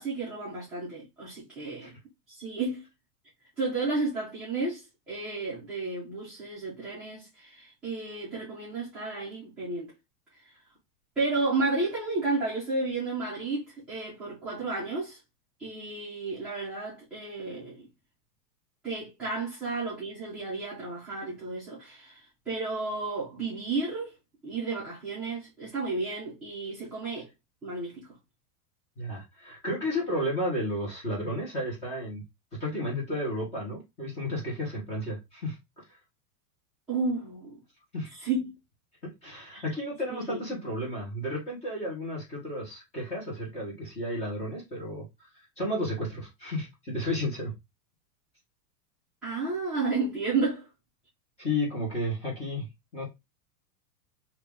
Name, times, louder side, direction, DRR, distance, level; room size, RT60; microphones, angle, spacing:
voice 1, 0.0-1.9 2.3-2.9 3.6-9.9 10.3-10.4 11.2-15.2 15.6-17.9 18.8-24.1 24.4-27.3 27.6-28.1 36.9-37.6 38.2-38.5 39.5-39.6 40.1-40.4 49.2-50.7, right 3 dB, ahead, 0.6 m, -32 dB
voice 2, 29.0-32.2 32.6-36.0 37.9-38.1 39.2-45.3 45.6-47.5 51.4-52.7 52.9-53.0, left 1 dB, 15° left, 1.2 m, -32 dB
2.9 x 2.8 x 3.5 m
supercardioid pair, 175°, 47 cm